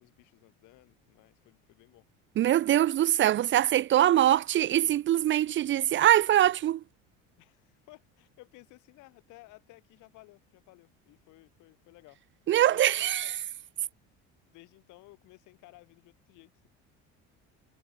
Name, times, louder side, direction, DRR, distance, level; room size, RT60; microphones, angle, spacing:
voice 1, 0.0-2.1 7.4-12.2 12.7-13.4 14.5-16.7, left 21 dB, 70° left, 7.6 m, -56 dB
voice 2, 2.4-6.8 12.5-13.3, right 12 dB, 40° right, 0.6 m, -23 dB
cardioid pair, 130°, 31 cm